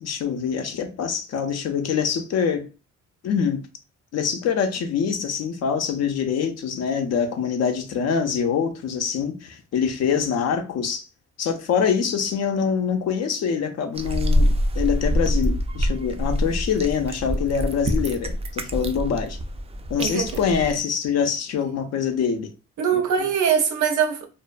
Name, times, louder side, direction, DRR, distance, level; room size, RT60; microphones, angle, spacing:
voice 1, 0.0-2.7 3.2-3.6 4.1-11.1 11.4-19.4 19.9-22.5 22.9-23.0, left 7 dB, 60° left, 0.5 m, -24 dB
sound 1, 13.9-20.8, equal, 20° right, 0.3 m, -25 dB
voice 2, 20.0-20.4 22.8-24.3, right 7 dB, 75° right, 0.7 m, -22 dB
2.4 x 2.1 x 2.4 m
cardioid pair, 90°, 30 cm